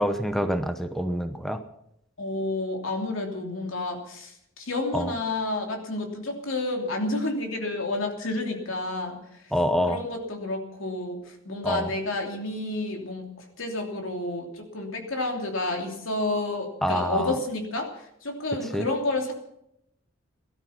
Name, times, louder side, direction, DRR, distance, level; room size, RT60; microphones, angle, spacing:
voice 1, 0.0-1.6 4.9-5.1 9.5-10.0 11.6-11.9 16.8-17.4 18.7-18.9, equal, ahead, 8 dB, 0.9 m, -26 dB
voice 2, 2.2-9.2 9.9-13.3 13.6-17.9 18.2-19.3, left 2 dB, 85° left, 2 dB, 3.0 m, -30 dB
17.5 x 12.5 x 5.9 m, 0.78 s
head